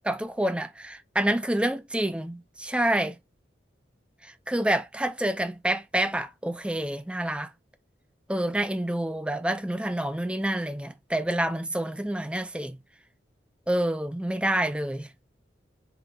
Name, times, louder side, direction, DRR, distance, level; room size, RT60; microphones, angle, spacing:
voice 1, 0.1-3.2 4.2-7.5 8.3-12.8 13.7-15.1, right 1 dB, 5° right, 0.5 m, -28 dB
5.7 x 3.6 x 2.3 m
head